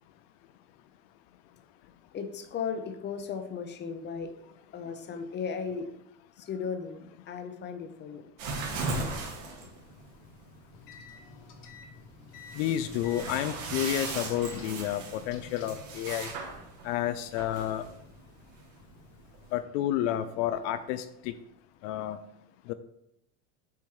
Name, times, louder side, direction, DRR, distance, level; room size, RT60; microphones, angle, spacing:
voice 1, 2.1-4.3 4.7-5.9 6.4-7.0 7.3-8.2, left 6 dB, 30° left, 7 dB, 0.7 m, -36 dB
sound 1, 8.4-19.6, right 3 dB, 65° right, 1.7 m, -38 dB
sound 2, 10.7-15.9, left 5 dB, 60° left, 1.2 m, -50 dB
voice 2, 12.5-16.3 16.8-17.8 19.5-21.4 21.8-22.2 22.7-22.8, left 12 dB, 75° left, 11 dB, 0.5 m, -30 dB
7.0 x 4.3 x 3.2 m, 0.78 s
supercardioid pair, 120°, 37 cm